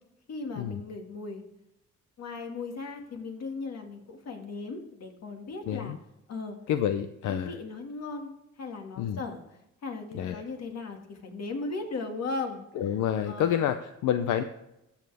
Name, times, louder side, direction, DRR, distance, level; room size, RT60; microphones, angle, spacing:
voice 1, 0.3-1.4 2.2-5.9 6.3-6.6 7.3-8.3 8.6-9.4 9.8-12.6 13.3-13.7, left 3 dB, 60° left, 3 dB, 2.1 m, -37 dB
voice 2, 5.7-6.0 6.7-7.5 9.0-9.2 10.1-10.4 12.8-14.4, left 10 dB, 80° left, 9 dB, 0.7 m, -28 dB
14.5 x 7.2 x 3.5 m, 0.87 s
cardioid pair, 90°, 30 cm